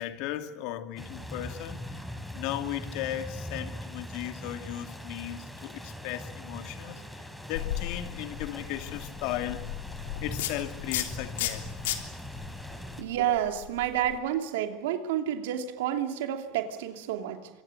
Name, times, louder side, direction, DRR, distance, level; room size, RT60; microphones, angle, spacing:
voice 1, 0.0-1.9 2.3-7.0 7.5-9.6 10.2-12.0, left 13 dB, 70° left, 2.4 m, -36 dB
sound 1, 1.0-13.0, equal, ahead, 4.4 m, -41 dB
sound 2, 7.5-14.2, left 12 dB, 85° left, 3.4 m, -36 dB
voice 2, 13.0-17.5, right 10 dB, 80° right, 2.8 m, -30 dB
26.0 x 25.0 x 8.5 m
supercardioid pair, 95°, 0 cm